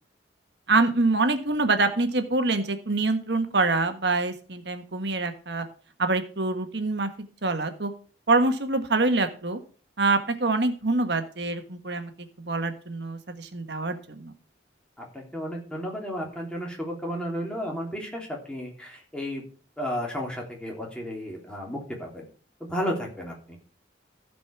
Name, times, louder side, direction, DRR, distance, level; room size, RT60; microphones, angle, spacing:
voice 1, 0.7-5.6 6.0-7.1 7.4-7.9 8.3-9.6 10.0-12.1 12.4-14.3, right 3 dB, 65° right, 7 dB, 1.5 m, -25 dB
voice 2, 15.0-19.4 19.8-22.3 22.6-23.6, equal, 5° left, -1 dB, 3.2 m, -33 dB
15.0 x 5.3 x 6.0 m, 0.41 s
head